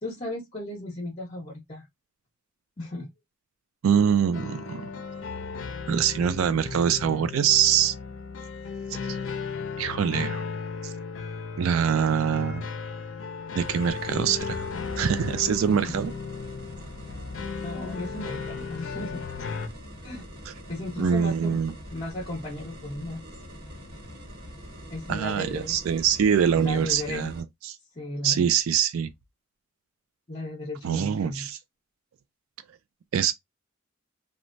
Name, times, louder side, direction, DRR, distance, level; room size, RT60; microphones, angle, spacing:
voice 1, 0.0-1.8 2.8-3.1 15.6-16.0 17.6-19.2 20.0-20.3 20.7-21.6 21.9-23.2 24.9-25.8 26.6-27.3 27.9-28.5 30.3-31.6, left 1 dB, 35° left, 0.7 m, -35 dB
voice 2, 3.8-5.0 5.9-7.9 9.0-9.2 9.8-10.4 10.8-10.9 11.6-12.6 13.6-14.7 15.0-16.1 20.5-20.6 21.0-21.7 25.1-27.8 28.2-29.1 30.8-31.6 33.1-33.3, right 8 dB, 90° right, 0.3 m, -24 dB
sound 1, 3.9-19.7, left 5 dB, 65° left, 0.5 m, -35 dB
sound 2, 13.6-27.4, equal, 50° right, 1.2 m, -44 dB
3.0 x 2.2 x 2.5 m
head